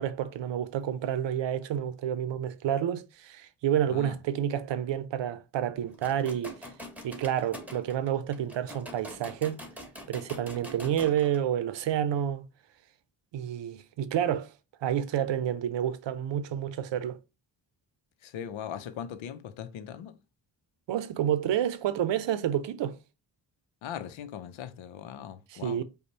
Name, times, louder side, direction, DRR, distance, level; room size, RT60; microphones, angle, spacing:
voice 1, 0.0-6.6 7.0-9.6 10.1-12.4 13.3-14.5 14.8-17.2 20.9-23.0 25.5-25.8, right 10 dB, 65° right, 0.6 m, -29 dB
sound 1, 5.9-11.4, equal, 5° right, 1.3 m, -45 dB
voice 2, 18.2-20.2 23.8-25.8, left 9 dB, 80° left, 0.7 m, -40 dB
5.3 x 2.3 x 4.0 m
supercardioid pair, 45°, 46 cm